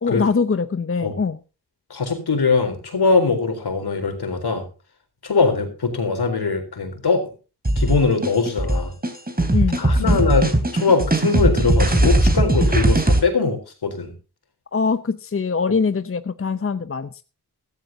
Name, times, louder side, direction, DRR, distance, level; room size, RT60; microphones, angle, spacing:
voice 1, 0.0-1.4 9.5-10.2 14.7-17.2, left 5 dB, 35° left, 12 dB, 0.8 m, -23 dB
voice 2, 1.9-4.7 5.2-7.2 7.8-8.9 9.8-14.1, left 4 dB, 75° left, 6 dB, 3.9 m, -21 dB
sound 1, 7.7-13.2, right 1 dB, 25° right, 2.9 m, -19 dB
15.5 x 14.0 x 2.8 m, 0.33 s
wide cardioid pair, 65°, 39 cm